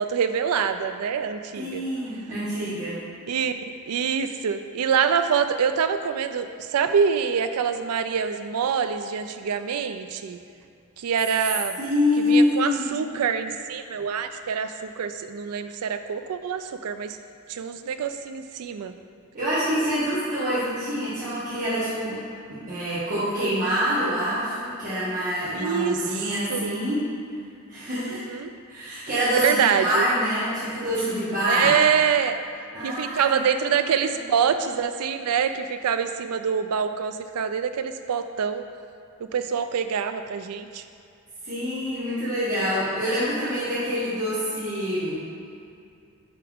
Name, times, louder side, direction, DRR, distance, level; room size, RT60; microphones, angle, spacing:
voice 1, 0.0-1.8 3.3-3.5 3.9-10.4 11.0-11.8 12.2-17.2 17.5-18.9 25.5-26.0 26.5-26.9 28.0-28.5 29.4-30.1 31.5-32.4 32.8-38.6 39.2-40.8, right 7 dB, 75° right, 9 dB, 0.4 m, -25 dB
voice 2, 1.6-3.0 11.8-13.0 19.3-22.2 22.5-27.1 27.7-28.2 28.7-31.8 32.7-33.4 41.4-45.2, equal, 40° right, -12 dB, 1.4 m, -26 dB
9.5 x 3.5 x 3.6 m, 2.5 s
head